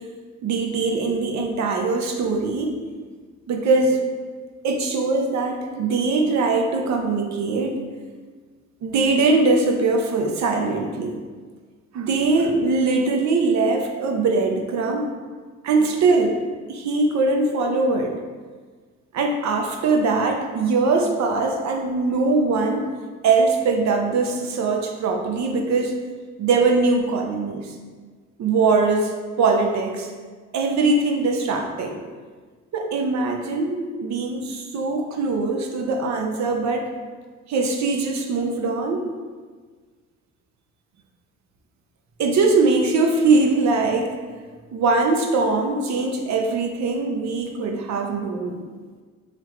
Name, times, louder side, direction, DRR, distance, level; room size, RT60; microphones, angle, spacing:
voice 1, 0.4-2.7 3.5-4.0 4.6-7.8 8.8-11.2 11.9-15.1 15.6-16.4 16.7-18.1 19.1-22.9 23.2-26.0 26.4-27.7 28.4-30.1 30.5-32.0 32.7-36.9 37.5-39.1 42.2-44.2 44.7-48.6, right 3 dB, 65° right, 2 dB, 0.6 m, -21 dB
3.3 x 3.2 x 3.7 m, 1.5 s
cardioid pair, 90°, 30 cm